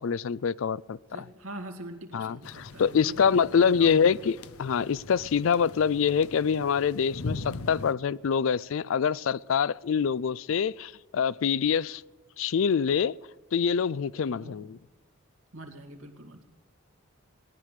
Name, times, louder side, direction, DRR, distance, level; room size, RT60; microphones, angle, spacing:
voice 1, 0.0-1.2 2.1-12.0 12.4-13.2 13.5-14.8, left 6 dB, 65° left, 0.4 m, -25 dB
voice 2, 1.1-4.2 14.2-14.6 15.5-16.4, right 1 dB, 75° right, 2.3 m, -43 dB
sound 1, 2.4-7.9, left 3 dB, 90° left, 0.8 m, -41 dB
17.5 x 11.0 x 6.6 m
head